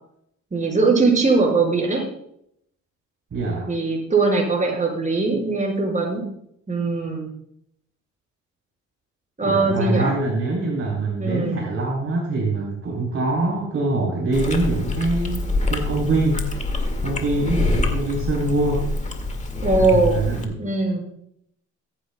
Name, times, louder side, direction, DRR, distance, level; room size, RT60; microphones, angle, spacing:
voice 1, 0.5-2.0 3.7-6.2 6.7-7.3 9.4-10.1 11.2-11.6 19.6-20.2 20.6-21.0, right 3 dB, 25° right, 0 dB, 5.4 m, -20 dB
voice 2, 3.3-3.8 9.4-15.4 15.7-16.5 17.0-18.8 19.8-20.6, right 2 dB, 50° right, -2 dB, 3.9 m, -24 dB
Chewing mastication, 14.3-20.5, left 2 dB, 25° left, 2.0 m, -26 dB
22.0 x 9.9 x 2.3 m, 0.71 s
cardioid pair, 90°, 30 cm